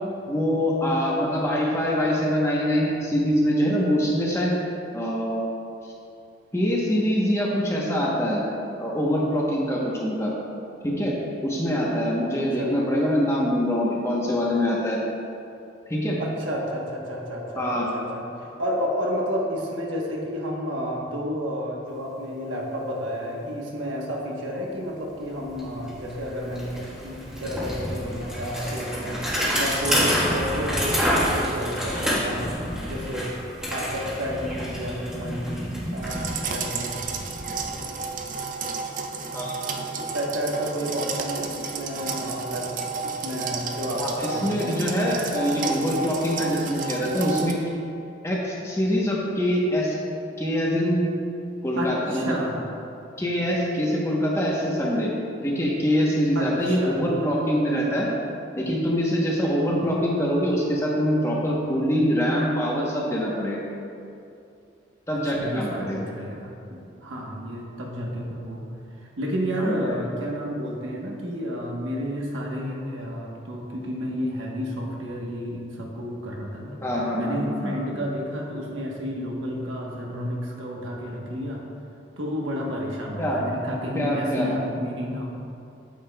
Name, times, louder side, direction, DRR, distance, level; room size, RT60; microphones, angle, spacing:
voice 1, 0.3-4.5 4.9-5.4 6.5-8.4 8.8-10.3 10.8-11.2 11.4-15.0 15.9-16.2 17.6-17.9 39.3-39.6 44.0-47.6 48.2-50.0 50.4-51.1 51.6-52.4 53.2-55.1 55.4-58.1 58.6-63.7 65.1-66.1 69.6-70.0 76.8-77.7 83.2-83.4 83.9-84.5, equal, 15° left, -4 dB, 0.9 m, -24 dB
voice 2, 12.4-12.7 16.2-29.2 29.5-32.6 32.8-33.4 33.7-36.9 40.0-42.7 43.0-44.7 51.8-52.7 56.3-57.1 65.3-68.7 69.2-76.8 77.1-81.6 82.2-85.3, equal, 85° right, -2 dB, 1.1 m, -31 dB
Bicycle, 25.1-25.2 25.5-38.4, equal, 5° right, 1.3 m, -28 dB
sound 1, 36.0-47.5, right 4 dB, 40° right, 0.5 m, -32 dB
9.1 x 7.2 x 2.2 m, 2.6 s
head